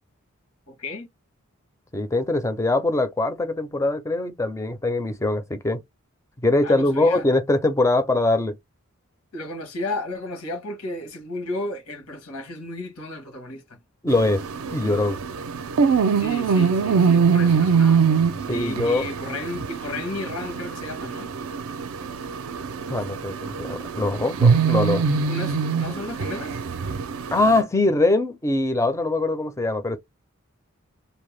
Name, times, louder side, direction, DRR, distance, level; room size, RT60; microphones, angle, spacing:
voice 1, 0.7-1.1 6.6-7.2 9.3-13.8 16.2-18.0 18.5-21.3 24.6-24.8 25.1-26.6, left 2 dB, 85° left, 1.3 m, -33 dB
voice 2, 1.9-5.8 6.4-8.6 14.0-14.5 14.7-15.2 18.5-19.0 22.9-25.0 27.3-30.0, left 2 dB, 15° left, 0.4 m, -22 dB
sound 1, 14.1-27.6, right 6 dB, 70° right, 0.4 m, -23 dB
2.7 x 2.1 x 3.1 m
head